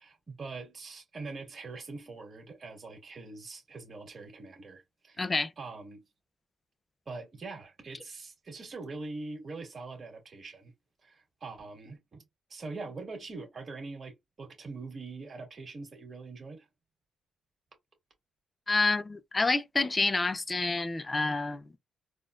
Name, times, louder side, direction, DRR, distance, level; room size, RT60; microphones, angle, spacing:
voice 1, 0.0-6.0 7.1-10.7 11.0-12.2 12.5-16.7, right 3 dB, 40° right, 1.8 m, -43 dB
voice 2, 5.2-5.5 18.7-21.7, left 3 dB, 25° left, 0.5 m, -28 dB
4.1 x 2.4 x 2.4 m
cardioid pair, 90°, 0 cm